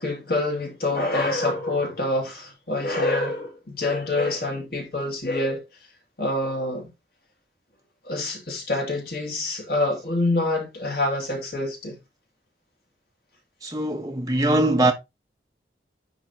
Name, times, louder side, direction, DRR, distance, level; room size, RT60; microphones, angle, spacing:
voice 1, 0.0-5.6 6.2-6.9 8.0-12.0, left 2 dB, 60° left, 2.5 m, -26 dB
voice 2, 13.6-14.9, right 2 dB, 20° right, 1.3 m, -21 dB
10.0 x 3.9 x 2.9 m
head